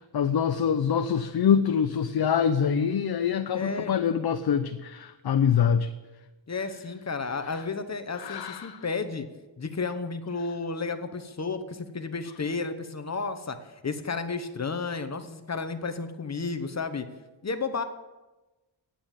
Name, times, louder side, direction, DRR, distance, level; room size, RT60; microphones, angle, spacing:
voice 1, 0.1-5.9 8.2-8.8, left 7 dB, 55° left, 8 dB, 0.7 m, -25 dB
voice 2, 3.5-3.9 6.5-9.3 9.6-13.6 13.8-17.1 17.4-17.8, left 4 dB, 35° left, 9 dB, 1.0 m, -32 dB
9.7 x 8.7 x 9.0 m, 1.1 s
wide cardioid pair, 115°, 48 cm